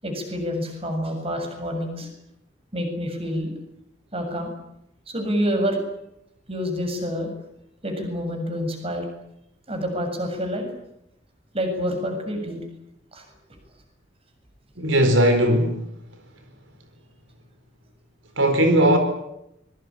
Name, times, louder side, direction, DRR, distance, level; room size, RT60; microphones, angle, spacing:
voice 1, 0.0-2.1 2.7-3.5 4.1-4.5 5.1-5.9 6.5-7.3 7.8-9.0 9.7-10.7 11.5-12.6 13.1-13.3, equal, 30° right, 5 dB, 7.3 m, -27 dB
voice 2, 14.8-15.8 18.4-19.0, right 1 dB, 80° right, 7 dB, 4.5 m, -18 dB
25.0 x 22.5 x 8.8 m, 0.82 s
head